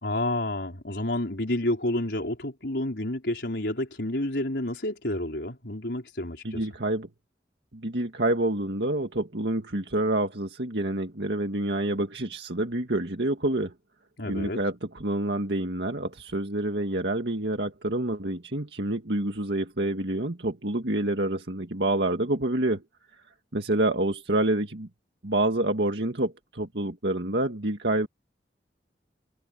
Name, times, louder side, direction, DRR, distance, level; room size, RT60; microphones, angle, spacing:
voice 1, 0.0-6.7 14.2-14.6, left 1 dB, 75° left, 4.6 m, -29 dB
voice 2, 6.4-7.1 7.7-13.7 14.2-22.8 23.5-24.9 25.2-28.1, right 1 dB, 75° right, 2.1 m, -27 dB
head